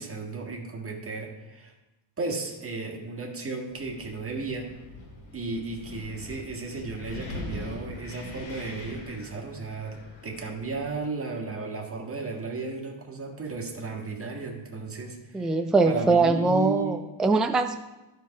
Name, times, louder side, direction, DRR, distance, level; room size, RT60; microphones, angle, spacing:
voice 1, 0.0-1.7 2.2-4.7 5.3-15.6 15.8-17.0, right 3 dB, 30° right, -1 dB, 1.6 m, -34 dB
Wind, 3.7-11.0, left 2 dB, 70° left, 2.6 m, -42 dB
voice 2, 15.3-17.8, right 3 dB, ahead, 6 dB, 0.3 m, -22 dB
12.0 x 4.6 x 5.8 m, 1.0 s
wide cardioid pair, 160°, 47 cm